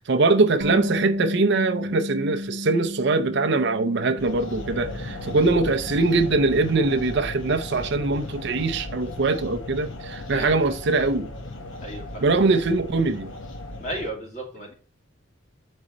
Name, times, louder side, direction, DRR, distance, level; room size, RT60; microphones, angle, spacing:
voice 1, 0.0-11.3 12.2-13.3, right 3 dB, 55° right, 0.5 m, -22 dB
Bass guitar, 0.6-6.9, left 2 dB, 80° right, 0.9 m, -33 dB
sound 1, 4.2-14.1, left 1 dB, 70° left, 1.1 m, -36 dB
voice 2, 10.3-10.7 11.8-12.2 13.8-14.7, right 1 dB, 35° left, 2.3 m, -34 dB
6.3 x 5.0 x 4.0 m
head